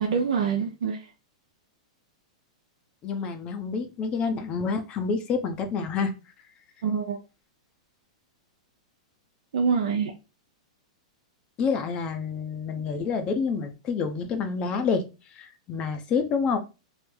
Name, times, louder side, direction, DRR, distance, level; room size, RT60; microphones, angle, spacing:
voice 1, 0.0-1.0 6.8-7.2 9.5-10.1 12.7-12.8, right 6 dB, 80° right, 0.6 m, -25 dB
voice 2, 3.0-6.1 11.6-15.0 15.3-16.6, left 5 dB, 30° left, 0.6 m, -28 dB
3.2 x 2.0 x 3.6 m
hypercardioid pair, 145°, 4 cm